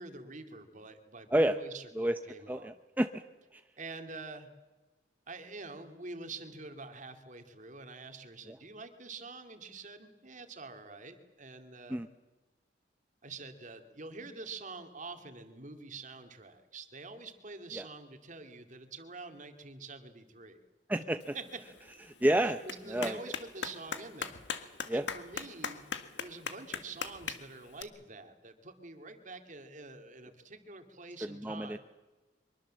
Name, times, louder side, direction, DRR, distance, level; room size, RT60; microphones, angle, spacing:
voice 1, 0.0-2.7 3.8-4.5 5.3-12.0 13.2-20.6 21.3-21.4 22.3-25.8 26.2-31.8, right 3 dB, 45° right, 6 dB, 2.4 m, -46 dB
voice 2, 2.5-3.2 3.5-3.6 11.9-12.1 17.7-17.8 20.9-21.2 22.2-22.6 22.9-23.2 24.9-25.0 31.2-31.8, right 1 dB, 10° right, 8 dB, 0.7 m, -29 dB
Clapping, 21.2-27.8, left 6 dB, 80° left, 1.8 m, -42 dB
24.0 x 22.5 x 7.6 m, 1.2 s
head